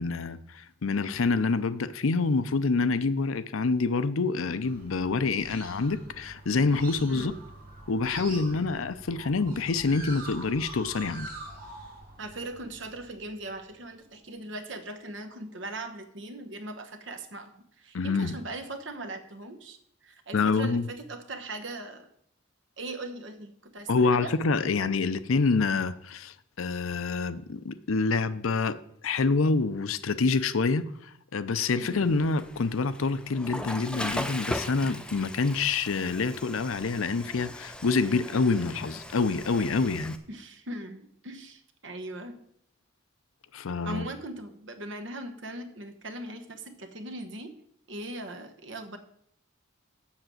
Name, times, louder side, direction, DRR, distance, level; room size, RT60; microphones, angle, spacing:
voice 1, 0.0-7.3 7.9-11.3 17.9-18.3 20.3-20.8 23.9-28.8 29.0-30.9 31.3-40.2 43.5-44.1, left 4 dB, 80° left, 0.6 m, -27 dB
sound 1, 4.6-13.7, right 2 dB, 45° right, 2.6 m, -45 dB
voice 2, 12.2-22.1 22.8-24.3 31.7-32.0 40.3-42.4 43.8-47.5 47.9-49.0, right 2 dB, 60° right, 1.2 m, -40 dB
Water / Toilet flush, 31.8-40.2, left 1 dB, 5° left, 0.5 m, -39 dB
7.4 x 6.7 x 7.6 m
head